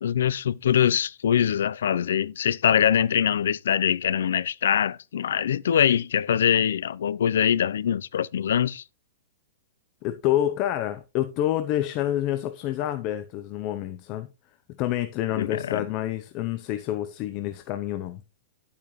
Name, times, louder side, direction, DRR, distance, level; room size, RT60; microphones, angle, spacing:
voice 1, 0.0-8.8 15.4-15.9, left 9 dB, 85° left, 0.5 m, -23 dB
voice 2, 10.0-14.3 14.8-18.2, left 12 dB, 30° left, 0.7 m, -28 dB
11.5 x 8.6 x 3.1 m
supercardioid pair, 170°, 0 cm